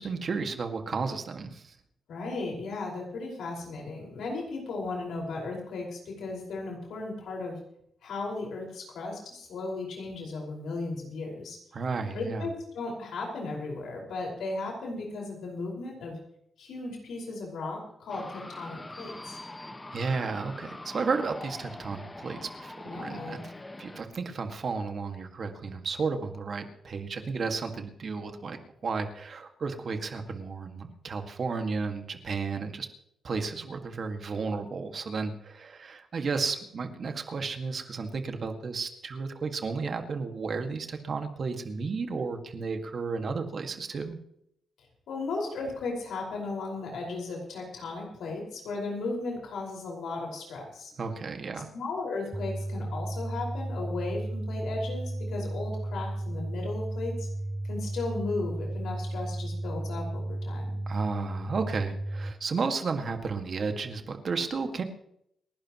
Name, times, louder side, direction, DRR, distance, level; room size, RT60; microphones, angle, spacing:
voice 1, 0.0-1.7 11.7-12.5 19.6-23.4 23.8-32.9 33.2-44.2 51.0-51.7 60.9-64.8, right 4 dB, 55° right, 6 dB, 2.0 m, -33 dB
voice 2, 2.1-7.6 8.0-11.6 12.1-16.2 16.6-19.4 22.8-23.4 45.1-50.9 51.7-57.3 57.7-60.8, left 3 dB, 85° left, -1 dB, 5.4 m, -36 dB
sound 1, 18.1-24.0, left 2 dB, 20° left, 1.4 m, -43 dB
sound 2, 52.3-62.3, right 1 dB, 5° right, 0.6 m, -34 dB
29.0 x 11.5 x 3.1 m, 0.74 s
cardioid pair, 75°, 0 cm